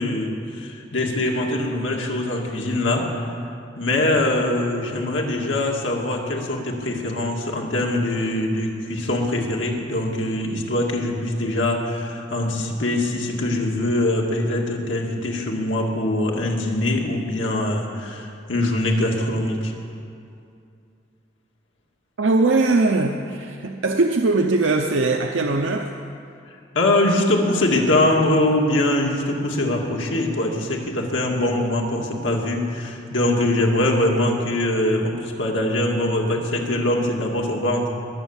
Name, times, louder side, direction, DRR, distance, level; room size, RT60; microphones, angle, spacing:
voice 1, 0.0-3.1 3.7-19.7 26.7-38.0, left 1 dB, 85° left, -1 dB, 2.3 m, -23 dB
voice 2, 22.2-25.9, right 3 dB, 90° right, 3 dB, 0.7 m, -20 dB
21.5 x 8.1 x 7.4 m, 2.5 s
head